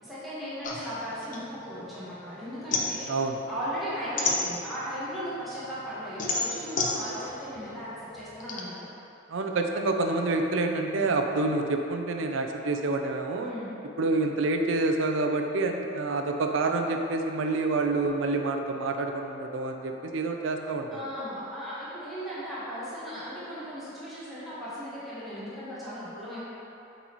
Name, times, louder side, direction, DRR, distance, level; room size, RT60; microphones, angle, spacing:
voice 1, 0.0-3.1 3.5-8.9 13.4-13.7 20.9-26.4, equal, ahead, -12 dB, 1.4 m, -37 dB
sound 1, 0.6-2.1 2.4-5.0 5.4-8.6, left 3 dB, 40° left, 0.6 m, -31 dB
voice 2, 3.1-3.4 9.3-13.5 14.0-21.0, right 3 dB, 75° right, 4 dB, 0.5 m, -27 dB
8.2 x 4.0 x 3.0 m, 2.9 s
head